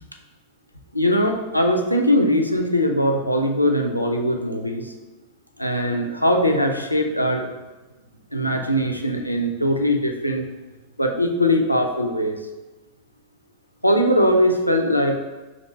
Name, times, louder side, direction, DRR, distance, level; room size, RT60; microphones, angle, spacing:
voice 1, 0.9-4.9 5.6-7.5 8.3-10.4 11.0-12.4 13.8-15.2, equal, 90° left, 3 dB, 0.4 m, -21 dB
2.9 x 2.6 x 4.3 m, 1.2 s
figure-of-eight pair, 90°, 0 cm